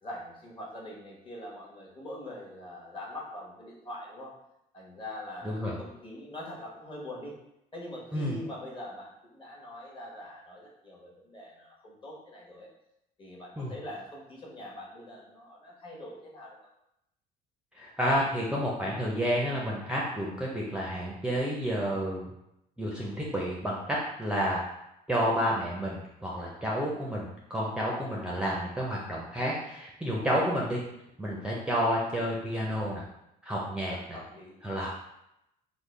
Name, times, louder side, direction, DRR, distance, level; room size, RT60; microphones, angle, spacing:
voice 1, 0.0-4.3 4.7-7.3 7.7-12.7 13.2-16.6 30.2-30.5 31.4-31.6 33.9-34.9, left 1 dB, 30° left, -3 dB, 1.0 m, -43 dB
voice 2, 17.7-22.3 22.8-24.6 25.1-30.8 31.2-33.0 33.4-34.0 34.6-34.9, equal, 5° right, -4 dB, 0.5 m, -30 dB
3.6 x 2.0 x 3.1 m, 0.83 s
cardioid pair, 110°, 17 cm